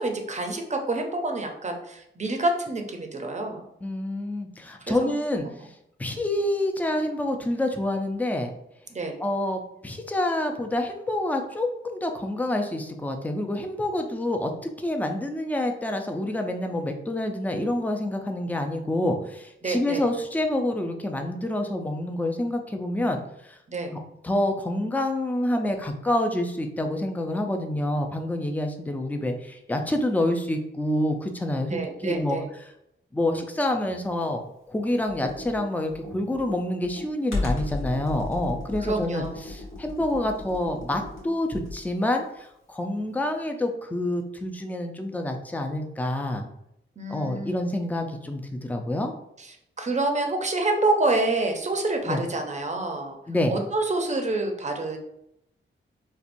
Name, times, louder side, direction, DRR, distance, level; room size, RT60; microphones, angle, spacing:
voice 1, 0.0-3.6 4.8-5.1 5.4-5.5 8.9-9.2 19.6-20.0 23.7-23.9 31.7-32.5 38.8-39.4 47.0-47.6 49.4-53.2 53.5-55.0, right 2 dB, 35° right, 3 dB, 0.6 m, -27 dB
voice 2, 3.8-5.5 6.0-8.5 9.2-14.5 14.8-23.2 23.5-23.6 24.2-32.4 33.1-34.4 34.7-46.5 47.1-49.1 52.1-52.2 53.3-53.5, left 1 dB, 10° left, 4 dB, 0.5 m, -27 dB
Computer keyboard, 35.1-41.9, left 2 dB, 85° left, 1.2 m, -35 dB
4.3 x 2.5 x 2.6 m, 0.79 s
wide cardioid pair, 80°, 21 cm